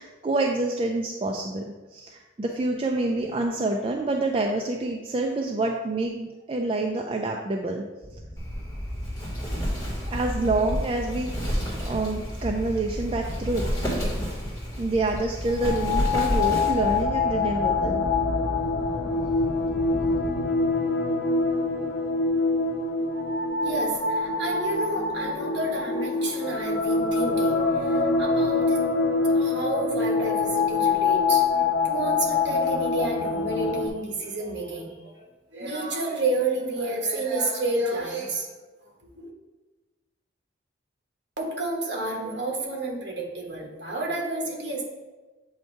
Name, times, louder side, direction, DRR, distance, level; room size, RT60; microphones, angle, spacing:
voice 1, 0.0-1.6 1.9-7.8 10.1-11.3 11.9-13.7 14.8-18.0, right 2 dB, 30° right, 1 dB, 0.3 m, -27 dB
sound 1, 8.0-20.4, equal, 5° right, 1.2 m, -36 dB
Wind, 8.4-17.0, equal, 15° left, 1.4 m, -31 dB
sound 2, 15.5-33.9, left 4 dB, 90° left, 0.8 m, -25 dB
voice 2, 23.6-28.9 29.3-31.4 31.8-38.5 39.1-39.3 41.4-44.8, right 2 dB, 60° right, -1 dB, 1.3 m, -30 dB
7.8 x 2.7 x 4.5 m, 1.2 s
head